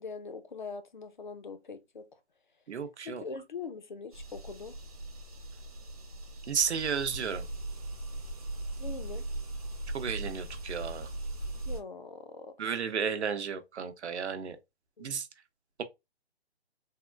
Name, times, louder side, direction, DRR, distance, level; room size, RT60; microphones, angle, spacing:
voice 1, 0.0-2.2 3.0-4.8 8.8-9.3 11.7-12.8 15.0-15.1, left 4 dB, 45° left, 0.4 m, -42 dB
voice 2, 2.7-3.2 6.5-7.4 9.9-11.1 12.6-14.6 15.0-15.3, right 7 dB, 85° right, 0.7 m, -33 dB
sound 1, 4.1-11.8, right 2 dB, 35° right, 0.7 m, -39 dB
3.6 x 2.2 x 2.3 m
hypercardioid pair, 175°, 33 cm